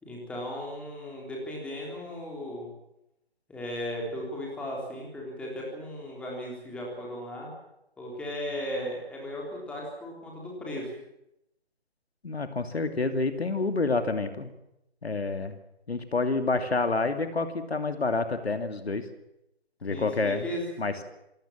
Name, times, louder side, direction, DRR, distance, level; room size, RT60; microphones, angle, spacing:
voice 1, 0.0-2.7 3.5-7.5 8.0-10.9 19.9-21.0, equal, 5° left, -2 dB, 3.8 m, -36 dB
voice 2, 12.2-14.5 15.0-15.6 15.9-19.0 19.8-20.5 20.8-21.0, left 3 dB, 70° left, 8 dB, 2.8 m, -28 dB
27.5 x 18.0 x 7.5 m, 0.85 s
figure-of-eight pair, 160°, 33 cm